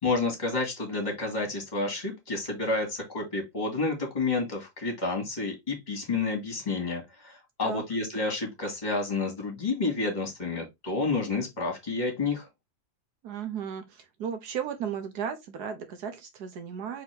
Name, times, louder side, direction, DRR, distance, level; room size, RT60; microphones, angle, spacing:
voice 1, 0.0-12.5, left 3 dB, 30° left, 2.1 m, -30 dB
voice 2, 13.2-17.0, right 7 dB, 80° right, 1.5 m, -35 dB
4.3 x 3.6 x 3.4 m
omnidirectional pair, 1.7 m